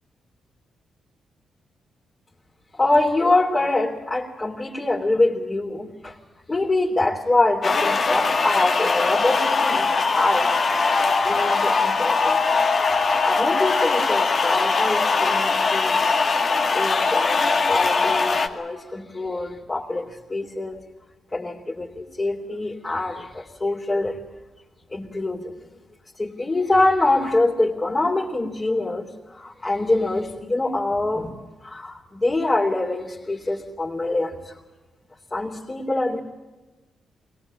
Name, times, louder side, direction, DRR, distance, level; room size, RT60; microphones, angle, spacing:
voice 1, 2.7-6.2 6.5-10.5 11.2-12.4 12.8-16.0 16.7-20.8 21.3-24.2 24.9-25.6 26.2-34.6 35.3-36.2, left 2 dB, 30° left, -3 dB, 3.4 m, -24 dB
sound 1, 7.6-18.5, left 4 dB, 55° left, 2.0 m, -21 dB
22.0 x 19.0 x 8.9 m, 1.2 s
hypercardioid pair, 45°, 0 cm